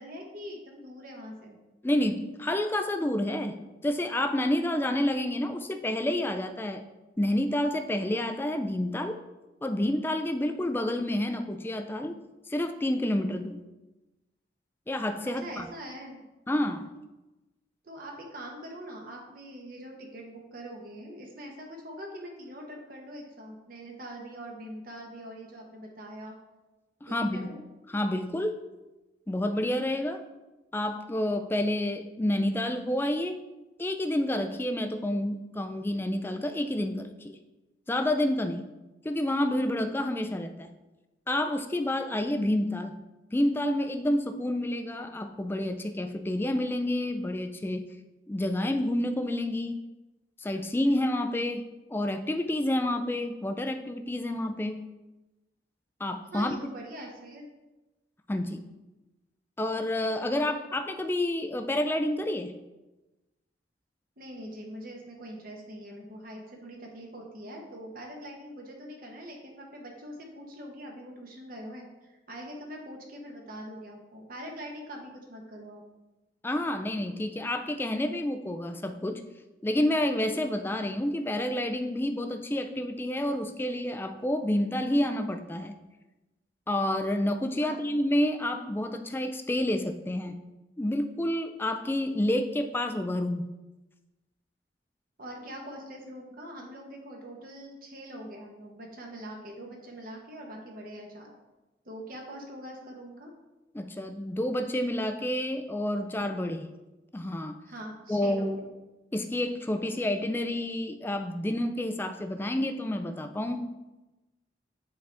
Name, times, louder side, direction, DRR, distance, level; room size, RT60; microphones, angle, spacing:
voice 1, 0.0-1.6 15.2-16.2 17.8-26.4 27.1-27.6 56.3-57.5 64.2-75.8 87.6-88.0 95.2-101.3 101.8-103.3 107.7-108.5, equal, 50° right, 0 dB, 1.0 m, -43 dB
voice 2, 1.8-6.8 7.2-9.2 9.6-12.2 12.5-13.6 14.9-15.7 16.5-16.9 27.0-27.5 27.9-28.6 29.3-30.2 30.7-33.4 33.8-37.3 37.9-38.7 39.0-40.7 41.3-43.0 43.3-47.8 48.3-49.8 50.4-51.6 51.9-54.9 56.0-56.6 58.3-58.6 59.6-62.5 76.4-79.2 79.6-85.8 86.7-90.4 90.8-93.4 103.7-106.7 107.1-107.6 108.1-108.6 109.1-113.7, left 1 dB, 10° left, 7 dB, 0.3 m, -29 dB
7.9 x 3.9 x 3.4 m, 1.1 s
head